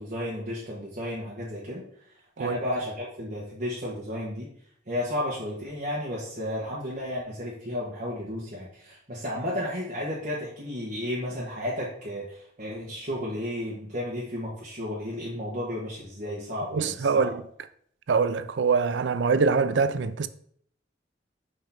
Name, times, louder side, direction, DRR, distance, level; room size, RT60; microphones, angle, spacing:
voice 1, 0.0-4.5 4.9-17.3, left 1 dB, 45° right, 1.5 m, -33 dB
voice 2, 16.7-17.3 18.1-20.3, right 5 dB, 80° right, 0.5 m, -24 dB
5.2 x 3.9 x 5.9 m
head